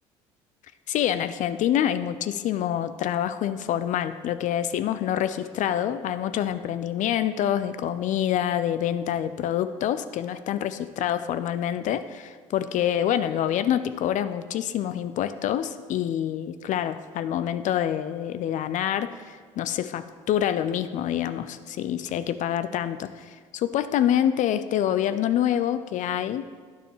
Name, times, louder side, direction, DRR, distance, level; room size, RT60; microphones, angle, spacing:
voice 1, 0.9-26.5, left 10 dB, 50° left, 12 dB, 0.4 m, -26 dB
9.8 x 6.5 x 3.2 m, 1.6 s
hypercardioid pair, 60°, 16 cm